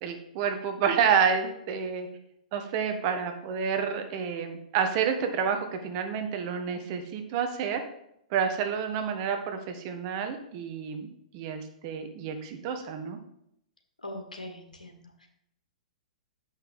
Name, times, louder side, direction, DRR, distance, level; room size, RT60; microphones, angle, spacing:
voice 1, 0.0-2.1 2.5-7.8 8.3-13.2, right 7 dB, 45° right, 6 dB, 1.3 m, -29 dB
voice 2, 14.0-15.3, left 1 dB, 90° left, 2 dB, 1.7 m, -42 dB
7.2 x 5.7 x 5.3 m, 0.74 s
figure-of-eight pair, 110°, 4 cm